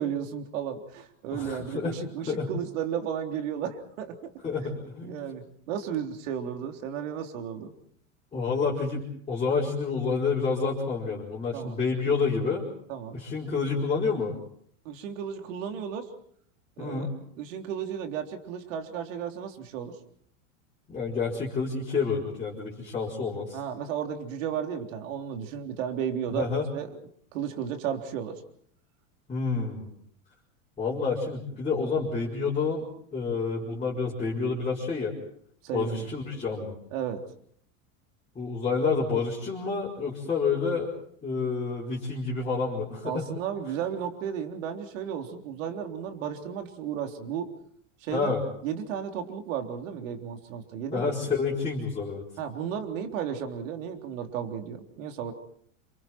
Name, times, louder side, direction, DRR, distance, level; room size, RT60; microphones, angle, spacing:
voice 1, 0.0-4.2 5.0-7.7 11.5-11.8 12.9-13.2 14.9-16.1 16.8-17.1 17.4-20.0 23.5-26.5 26.7-27.0 27.3-28.4 35.6-36.0 36.9-37.2 43.0-47.5 48.0-48.3 48.6-51.1 52.4-55.3, right 8 dB, 70° right, 5 dB, 3.6 m, -34 dB
voice 2, 1.3-1.9 2.3-2.5 4.4-5.2 8.3-12.6 13.1-14.3 16.8-17.1 20.9-23.6 26.3-26.6 29.3-29.9 30.8-35.2 35.7-36.7 38.3-40.9 41.2-43.3 48.1-48.4 50.9-52.2, left 4 dB, 15° left, -6 dB, 5.0 m, -29 dB
29.5 x 27.0 x 4.6 m, 0.62 s
supercardioid pair, 165°, 40 cm